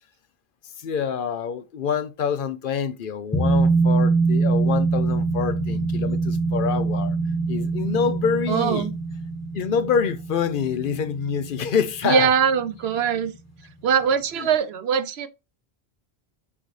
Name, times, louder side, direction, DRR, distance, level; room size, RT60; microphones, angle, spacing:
voice 1, 0.8-7.2 7.5-8.9 9.5-12.4 14.3-14.5, left 6 dB, 60° left, 0.7 m, -26 dB
sound 1, 3.3-12.4 12.7-12.8, right 4 dB, 15° left, 1.0 m, -24 dB
voice 2, 8.5-8.9 12.0-13.3 13.8-15.3, right 7 dB, 85° right, 1.0 m, -22 dB
8.4 x 4.0 x 3.1 m
omnidirectional pair, 1.0 m